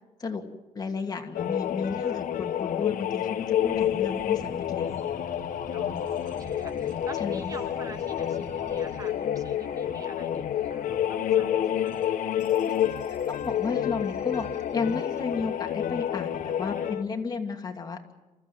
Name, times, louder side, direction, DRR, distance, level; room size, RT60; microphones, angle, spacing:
voice 1, 0.7-4.8 7.2-7.6 12.7-18.1, left 4 dB, 30° left, 3 dB, 2.6 m, -33 dB
sound 1, 1.3-17.0, left 10 dB, 75° left, 1.4 m, -29 dB
voice 2, 1.9-2.2 5.7-12.1 16.6-17.0, right 2 dB, 25° right, 9 dB, 1.4 m, -46 dB
sound 2, 3.6-8.8, right 1 dB, ahead, 5.2 m, -47 dB
sound 3, 4.8-15.5, right 3 dB, 75° right, 6.7 m, -57 dB
28.0 x 15.5 x 9.4 m, 1.1 s
cardioid pair, 145°, 14 cm